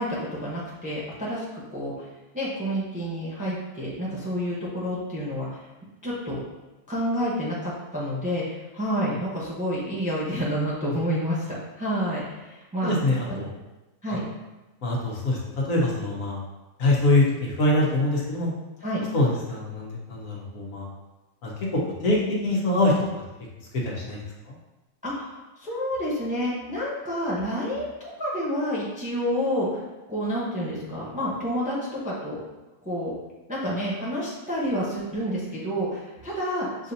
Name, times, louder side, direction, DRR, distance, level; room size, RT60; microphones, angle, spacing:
voice 1, 0.0-1.9 2.3-5.6 6.0-6.4 6.9-12.9 14.0-14.2 18.8-19.0 25.0-27.9 28.2-29.8 30.1-32.4 32.8-33.1 33.5-36.9, equal, 5° right, -6 dB, 0.8 m, -29 dB
voice 2, 12.8-13.5 14.1-14.2 14.8-15.4 15.7-16.4 16.8-18.5 19.1-20.9 21.4-22.2 22.4-22.9 23.8-24.2 24.4-24.5, left 2 dB, 90° left, -4 dB, 1.4 m, -24 dB
6.8 x 2.6 x 2.7 m, 1.1 s
omnidirectional pair, 1.4 m